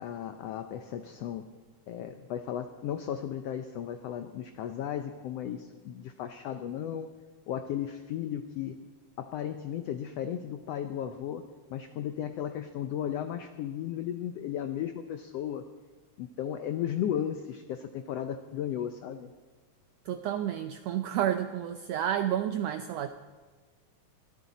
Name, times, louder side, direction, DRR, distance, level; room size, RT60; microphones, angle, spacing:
voice 1, 0.0-1.5 1.9-7.1 7.5-8.8 9.2-11.4 11.7-15.6 16.2-19.3, left 10 dB, 80° left, 8 dB, 1.4 m, -35 dB
voice 2, 20.1-23.1, right 10 dB, 80° right, 9 dB, 1.5 m, -30 dB
23.5 x 14.0 x 4.1 m, 1.4 s
omnidirectional pair, 3.6 m